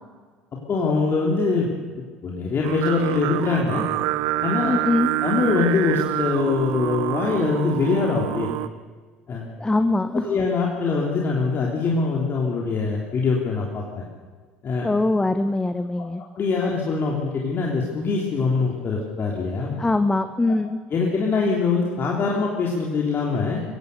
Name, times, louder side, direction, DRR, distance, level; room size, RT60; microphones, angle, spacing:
voice 1, 0.7-1.7 2.2-3.8 4.4-4.8 5.2-8.5 9.3-9.4 10.3-14.0 14.6-14.9 16.0-16.1 16.4-19.8 20.9-23.6, left 4 dB, 35° left, -2 dB, 3.4 m, -23 dB
Singing, 2.6-8.7, right 15 dB, 60° right, 0.8 m, -27 dB
voice 2, 4.6-5.1 9.6-10.3 14.8-16.2 19.8-20.8, left 2 dB, 10° left, 11 dB, 1.0 m, -22 dB
23.5 x 16.5 x 6.8 m, 1.5 s
figure-of-eight pair, 65°, 6 cm